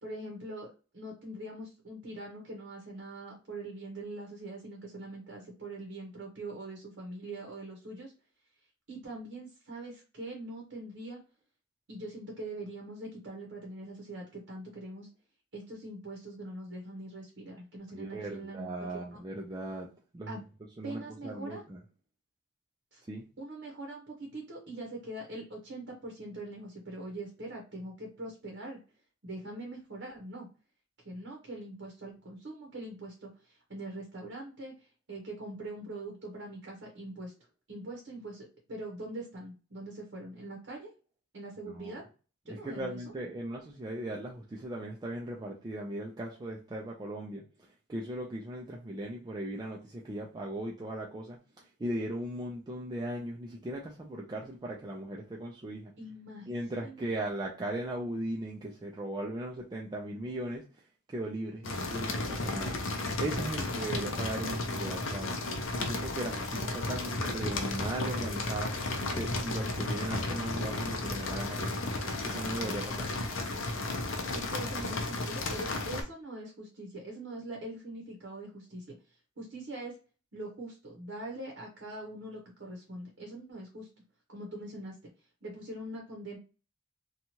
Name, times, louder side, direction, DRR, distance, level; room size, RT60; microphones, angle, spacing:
voice 1, 0.0-8.1 8.9-11.2 11.9-15.1 15.5-19.2 20.3-20.4 20.8-21.6 22.9-23.0 23.4-28.8 29.2-30.5 31.0-37.3 37.7-40.9 41.3-42.0 42.5-43.0 56.0-56.5 56.8-57.1 74.3-80.0 80.3-83.9 84.3-85.0 85.4-86.4, right 2 dB, 60° right, 0 dB, 0.8 m, -43 dB
voice 2, 17.9-20.4 20.8-21.8 23.1-23.2 41.6-42.0 42.5-55.9 56.5-60.8 61.1-62.8 63.2-65.3 65.8-68.7 69.1-71.8 72.2-73.1, right 1 dB, 20° right, -2 dB, 0.3 m, -38 dB
sound 1, 61.6-76.0, left 2 dB, 70° left, 0.6 m, -33 dB
2.7 x 2.3 x 2.8 m, 0.34 s
head